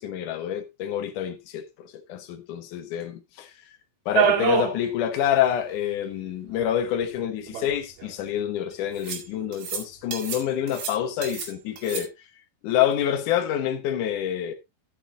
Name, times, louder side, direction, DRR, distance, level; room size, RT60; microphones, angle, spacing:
voice 1, 0.0-3.5 4.1-12.1 12.6-14.5, left 10 dB, 70° left, 2.0 m, -27 dB
sound 1, 4.1-4.8 5.2-5.3 5.5-5.6 6.6-6.7 7.5-8.1 9.0-9.3 9.5-9.8 10.1-10.4 10.7-11.5 11.8-12.0, right 9 dB, 70° right, 4.3 m, -26 dB
13.5 x 8.5 x 2.6 m
omnidirectional pair, 5.1 m